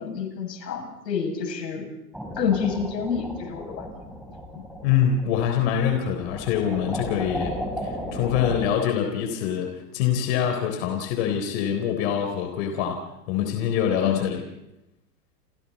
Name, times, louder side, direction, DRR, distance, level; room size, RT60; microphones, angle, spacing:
voice 1, 0.0-1.9 2.4-3.9 4.5-4.6 13.4-13.5 14.0-14.4, left 7 dB, 85° left, 3 dB, 7.6 m, -28 dB
sound 1, 2.1-8.7, equal, ahead, 4.2 m, -35 dB
voice 2, 4.8-7.5 7.8-13.0 13.3-14.4, left 8 dB, 45° left, 4 dB, 3.9 m, -25 dB
29.5 x 27.5 x 4.3 m, 0.89 s
hypercardioid pair, 155°, 49 cm